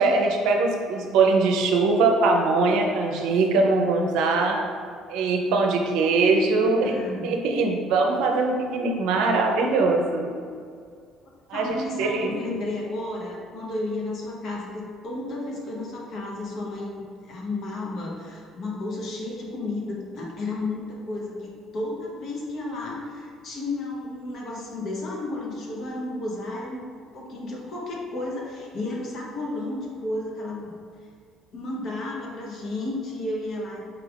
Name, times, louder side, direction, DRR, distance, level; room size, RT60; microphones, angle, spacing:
voice 1, 0.0-4.6 5.1-6.9 7.2-10.3 11.5-12.3, right 3 dB, 80° right, 2 dB, 0.5 m, -22 dB
voice 2, 6.7-7.4 11.5-26.8 27.1-30.7 31.5-33.8, left 2 dB, 55° left, -2 dB, 0.9 m, -32 dB
4.7 x 3.5 x 2.4 m, 2.2 s
supercardioid pair, 90°, 0 cm